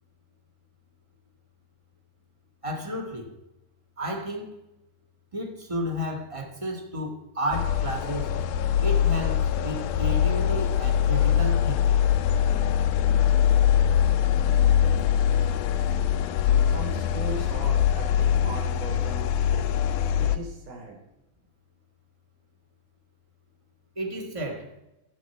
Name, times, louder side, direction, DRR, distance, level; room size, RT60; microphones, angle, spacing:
voice 1, 2.6-3.3 4.0-4.6 5.3-8.4 8.8-12.0 23.9-24.7, equal, 15° right, 1.1 m, -32 dB
sound 1, 7.5-20.4, left 9 dB, 80° left, 2.2 m, -23 dB
voice 2, 16.6-19.7 20.1-21.0, right 2 dB, 70° right, 5.0 m, -38 dB
18.0 x 7.7 x 4.5 m
omnidirectional pair, 3.8 m